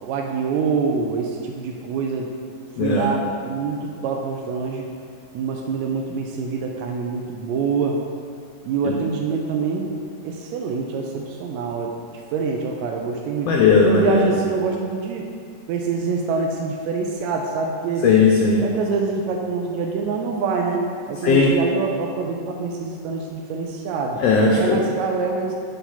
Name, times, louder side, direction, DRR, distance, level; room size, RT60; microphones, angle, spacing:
voice 1, 0.0-2.3 2.8-4.9 5.3-8.0 8.7-9.9 10.2-11.9 12.3-13.5 13.8-15.3 15.7-18.0 18.6-24.2 24.5-25.5, right 5 dB, 80° right, 0 dB, 1.7 m, -25 dB
voice 2, 2.8-3.1 8.8-8.9 13.5-14.3 18.0-18.6 21.2-21.5 24.2-24.8, left 4 dB, 85° left, -1 dB, 1.4 m, -17 dB
7.3 x 3.4 x 5.6 m, 2.2 s
omnidirectional pair, 3.5 m